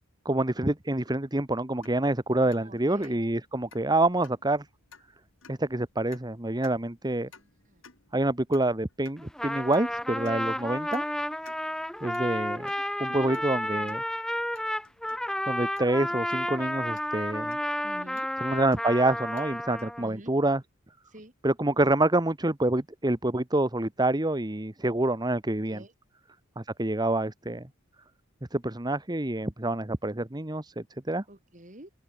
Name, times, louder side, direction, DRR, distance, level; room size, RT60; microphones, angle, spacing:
voice 1, 0.2-4.7 5.5-7.3 8.1-11.0 12.0-12.7 13.0-14.0 15.5-17.6 18.4-20.6 21.4-25.8 26.6-27.7 28.5-31.2, right 2 dB, 20° right, 1.3 m, -27 dB
sound 1, 1.8-19.9, left 4 dB, 65° left, 6.9 m, -58 dB
voice 2, 2.4-3.2 7.3-7.8 13.1-14.0 17.8-18.3 20.0-20.3 21.1-21.3 25.6-25.9 31.3-31.9, right 1 dB, 35° right, 4.5 m, -48 dB
Trumpet, 9.2-20.1, left 1 dB, 5° left, 0.7 m, -31 dB
open air
head